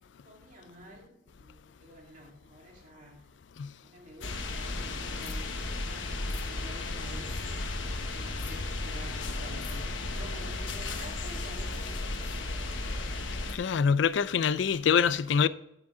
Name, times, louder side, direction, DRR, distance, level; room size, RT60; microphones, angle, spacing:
voice 1, 0.2-3.2 3.7-7.7 8.1-13.5, equal, 45° right, 2.5 m, -50 dB
sound 1, 4.2-13.6, left 2 dB, 90° left, 1.2 m, -34 dB
voice 2, 13.5-15.5, left 6 dB, 70° left, 0.4 m, -25 dB
13.0 x 6.1 x 3.8 m
head